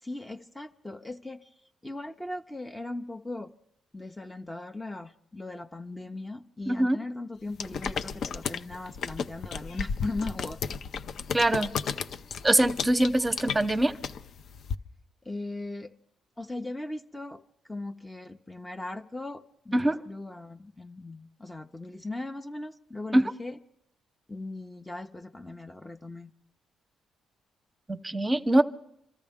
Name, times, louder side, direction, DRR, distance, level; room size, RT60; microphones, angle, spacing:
voice 1, 0.0-3.5 3.9-10.8 15.2-15.9 16.4-23.6 24.3-26.3, left 2 dB, 10° left, 0.5 m, -39 dB
voice 2, 6.7-7.0 11.3-11.7 12.4-13.9 19.7-20.0 23.1-23.3 27.9-28.6, right 1 dB, 15° right, 0.8 m, -23 dB
sound 1, 7.6-14.7, left 6 dB, 60° left, 0.5 m, -34 dB
26.0 x 13.5 x 3.5 m
cardioid pair, 90°, 0 cm